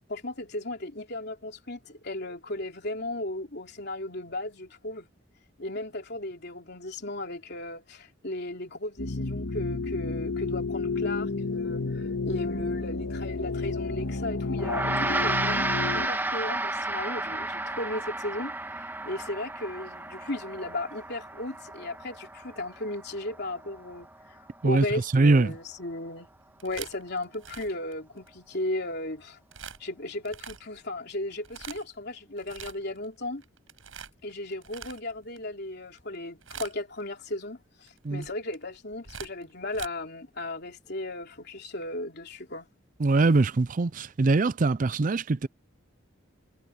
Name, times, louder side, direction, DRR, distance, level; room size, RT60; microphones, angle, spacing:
voice 1, 0.1-5.1 5.6-26.3 26.6-29.4 29.8-33.4 34.2-42.7, left 1 dB, 55° left, 3.5 m, -36 dB
sound 1, 9.0-16.1, left 3 dB, 80° left, 1.8 m, -31 dB
Gong, 14.6-24.2, right 2 dB, 10° right, 2.3 m, -32 dB
voice 2, 25.1-25.5 38.0-38.2 43.0-45.5, right 3 dB, 40° right, 0.5 m, -22 dB
sound 2, 26.4-28.6 29.5-29.8 30.2-30.8 31.3-32.0 32.4-33.1 33.4-35.4 35.9-36.2 36.4-37.0 37.9-39.9, right 7 dB, 85° right, 6.4 m, -43 dB
head